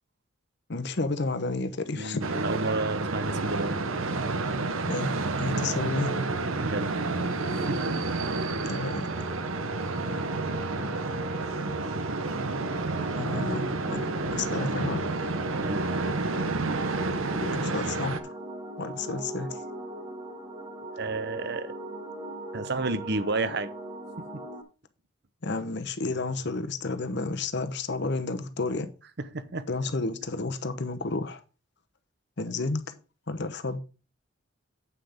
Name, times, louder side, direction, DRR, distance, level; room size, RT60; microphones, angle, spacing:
voice 1, 0.7-2.2 4.9-6.2 8.7-9.1 13.2-14.1 14.3-15.1 17.4-18.3 18.8-19.6 25.4-28.9 29.7-31.4 32.4-32.8 33.3-33.8, left 3 dB, 55° left, 0.9 m, -31 dB
voice 2, 1.9-3.8 6.6-6.9 7.7-7.8 15.5-15.9 21.0-21.7 22.5-23.7 24.3-24.4 29.3-29.6 32.6-32.7, right 3 dB, 55° right, 0.8 m, -31 dB
sound 1, 2.2-18.2, right 3 dB, 80° right, 0.9 m, -30 dB
sound 2, 9.1-24.6, right 1 dB, 25° right, 1.5 m, -40 dB
8.3 x 5.8 x 5.0 m
head